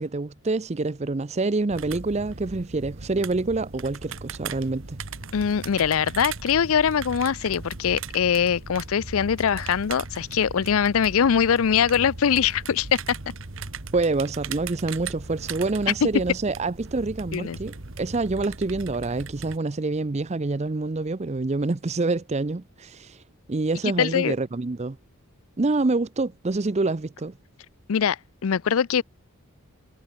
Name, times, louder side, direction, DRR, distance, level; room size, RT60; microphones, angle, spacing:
voice 1, 0.0-5.0 13.9-23.2 23.5-25.0 25.6-27.3, right 3 dB, 30° right, 0.5 m, -26 dB
sound 1, 1.7-19.6, right 4 dB, 60° right, 1.6 m, -38 dB
voice 2, 5.3-13.0 17.3-17.6 24.0-24.3 27.9-29.0, left 7 dB, 70° left, 0.4 m, -22 dB
head